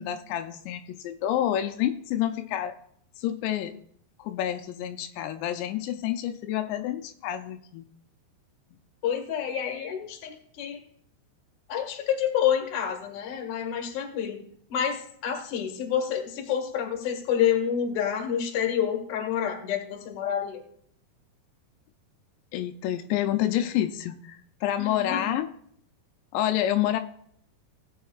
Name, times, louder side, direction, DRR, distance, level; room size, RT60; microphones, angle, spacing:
voice 1, 0.0-2.8 3.2-3.7 4.2-7.9 22.5-25.5 26.3-27.0, left 12 dB, 85° left, 7 dB, 2.8 m, -28 dB
voice 2, 9.0-10.8 11.7-14.4 14.7-20.6 24.8-25.3, left 9 dB, 55° left, 1 dB, 2.6 m, -28 dB
18.0 x 8.3 x 2.4 m, 0.67 s
omnidirectional pair, 5.0 m